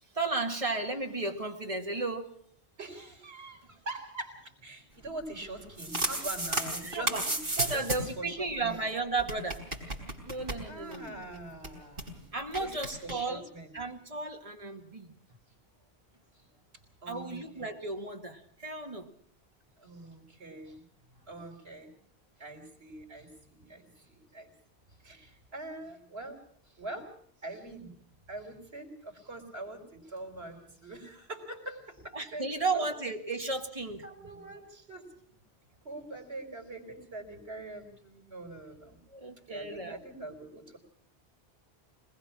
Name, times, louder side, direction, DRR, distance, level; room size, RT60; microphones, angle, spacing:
voice 1, 0.1-2.4 6.8-7.3 7.6-9.6 10.2-11.2 12.3-13.5 13.7-15.1 17.1-19.1 32.1-34.0 39.1-40.0, right 3 dB, 35° right, 3 dB, 2.0 m, -34 dB
voice 2, 2.8-8.8 10.7-12.3 12.5-13.7 16.3-16.5 17.0-17.7 19.8-21.9 22.4-24.5 25.0-26.4 26.7-27.1 27.4-28.0 28.3-32.9 34.0-35.1 35.8-39.0 39.4-40.8, right 2 dB, 75° right, 3 dB, 4.4 m, -43 dB
sound 1, 5.6-8.2 8.5-8.6 8.7-8.8 9.2-11.1 11.3-11.4 11.6-12.1 12.5-13.1, right 1 dB, 55° right, 4.3 m, -33 dB
22.5 x 20.5 x 6.2 m, 0.63 s
omnidirectional pair, 1.1 m